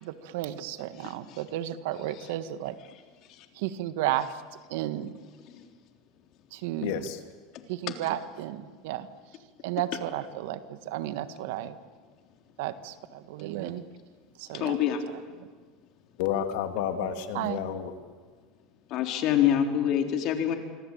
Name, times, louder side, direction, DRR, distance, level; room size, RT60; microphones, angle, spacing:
voice 1, 0.0-2.8 3.5-4.4 4.7-5.1 6.5-7.1 7.7-9.1 9.6-11.8 12.6-13.8 14.4-14.8 15.4-15.5 17.3-17.6, right 13 dB, 75° right, 11 dB, 1.6 m, -33 dB
voice 2, 1.0-1.4 3.3-3.5 5.5-5.7 7.5-7.6 14.5-15.0 18.9-20.6, left 10 dB, 55° left, 4 dB, 3.9 m, -26 dB
voice 3, 6.8-7.2 16.2-17.9, left 9 dB, 75° left, 7 dB, 2.6 m, -30 dB
26.0 x 25.0 x 8.9 m, 1.5 s
supercardioid pair, 125°, 0 cm